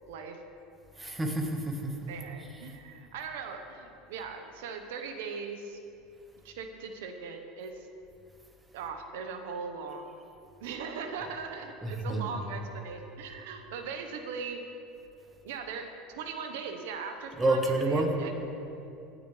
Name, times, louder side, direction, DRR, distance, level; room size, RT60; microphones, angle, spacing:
voice 1, 0.1-0.4 2.1-5.8 6.4-7.8 8.7-10.2 10.6-14.6 15.4-18.4, right 5 dB, 85° right, 6 dB, 1.2 m, -39 dB
voice 2, 1.0-2.1 11.8-12.3 17.4-18.1, right 2 dB, 10° right, 2 dB, 1.5 m, -28 dB
18.0 x 9.2 x 3.4 m, 2.7 s
supercardioid pair, 115°, 0 cm